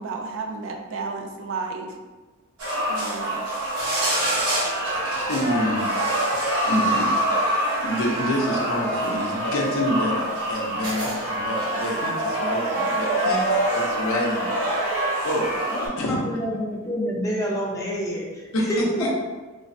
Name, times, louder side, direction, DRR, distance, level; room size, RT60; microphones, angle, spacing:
voice 1, 0.0-2.0 2.9-3.4, right 4 dB, 60° right, 4 dB, 0.3 m, -32 dB
sound 1, 2.6-15.9, right 1 dB, 80° right, 1.0 m, -25 dB
voice 2, 5.3-5.9 6.7-7.1 7.8-14.8 15.2-15.5 15.8-16.2 18.5-19.1, left 1 dB, 65° left, -1 dB, 0.5 m, -27 dB
voice 3, 15.7-19.1, equal, 15° left, -4 dB, 0.5 m, -28 dB
3.2 x 2.0 x 2.6 m, 1.3 s
head